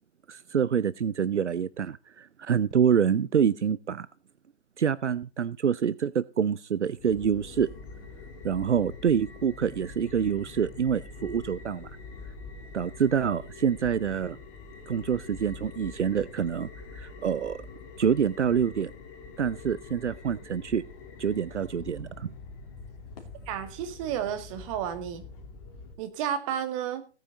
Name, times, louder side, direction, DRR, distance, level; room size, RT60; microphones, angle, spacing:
voice 1, 0.3-4.1 4.8-7.7 8.4-11.9 12.7-14.4 14.9-16.7 16.9-17.6 18.0-18.9 19.4-20.8 21.2-22.3, right 7 dB, 80° right, 19 dB, 0.7 m, -26 dB
sound 1, 7.0-25.9, left 4 dB, 30° left, 2.6 m, -45 dB
voice 2, 23.5-25.2 26.0-27.0, right 9 dB, 30° right, 8 dB, 2.1 m, -32 dB
16.5 x 9.1 x 4.0 m, 0.35 s
figure-of-eight pair, 130°, 35 cm